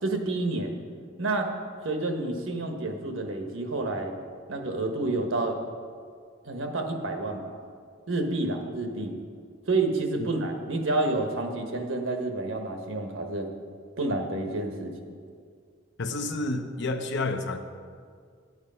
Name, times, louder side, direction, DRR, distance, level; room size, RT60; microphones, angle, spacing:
voice 1, 0.0-0.8 1.2-1.5 1.8-4.1 4.5-5.6 6.4-7.6 8.1-9.1 9.7-13.5 14.0-15.1, right 2 dB, 90° right, 4 dB, 1.2 m, -29 dB
voice 2, 16.0-17.6, left 2 dB, 60° left, 6 dB, 0.8 m, -30 dB
9.4 x 8.0 x 5.5 m, 2.1 s
head